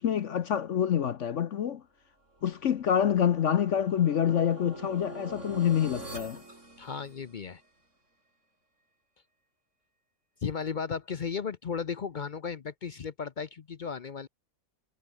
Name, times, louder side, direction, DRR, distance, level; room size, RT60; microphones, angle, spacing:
voice 1, 0.0-1.8 2.4-6.4, left 9 dB, 60° left, 0.8 m, -27 dB
sound 1, 2.4-7.6, right 2 dB, 40° right, 6.8 m, -45 dB
voice 2, 6.8-7.6 10.4-14.3, left 6 dB, 75° left, 0.4 m, -35 dB
omnidirectional pair, 1.9 m